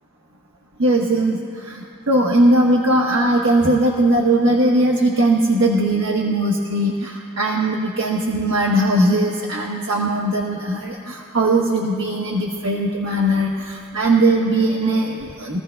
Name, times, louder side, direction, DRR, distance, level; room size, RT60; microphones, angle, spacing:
voice 1, 0.8-1.4 1.6-15.6, right 1 dB, 85° right, -1 dB, 1.2 m, -19 dB
23.5 x 15.0 x 2.2 m, 2.3 s
head